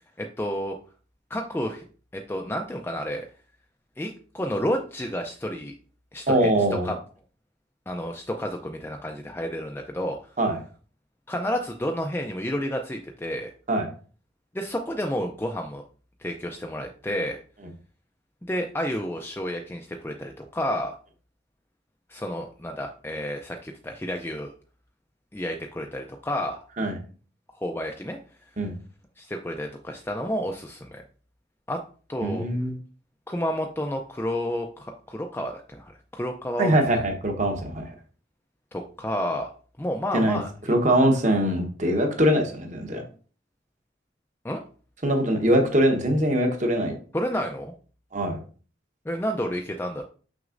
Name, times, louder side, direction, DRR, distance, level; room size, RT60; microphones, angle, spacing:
voice 1, 0.2-0.8 1.3-1.8 2.1-3.3 4.0-5.7 6.1-6.9 7.9-10.2 11.3-13.5 14.5-15.8 16.2-17.4 18.4-21.0 22.1-24.5 25.3-26.6 27.6-28.2 29.2-31.0 31.7-31.8 32.1-32.5 33.3-37.0 38.7-39.5 39.8-40.8 44.4-44.6 47.1-47.7 49.1-50.0, equal, 10° left, 3 dB, 0.4 m, -30 dB
voice 2, 6.3-6.9 10.4-10.6 13.7-13.9 26.8-27.0 28.6-28.7 32.2-32.7 36.6-37.9 40.1-40.4 40.7-43.0 45.0-46.9 48.1-48.4, right 1 dB, 35° right, 3 dB, 1.0 m, -22 dB
6.2 x 5.9 x 2.5 m, 0.39 s
head